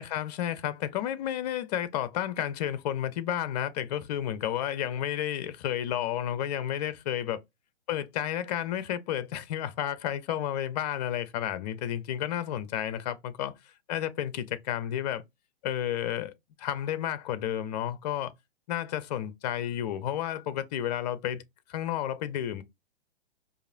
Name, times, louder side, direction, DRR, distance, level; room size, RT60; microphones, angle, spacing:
voice 1, 0.0-7.4 7.9-13.5 13.9-15.2 15.6-16.3 16.6-18.3 18.7-21.4 21.7-22.6, left 11 dB, 40° left, 0.5 m, -31 dB
4.7 x 2.5 x 2.5 m
figure-of-eight pair, 115°, 33 cm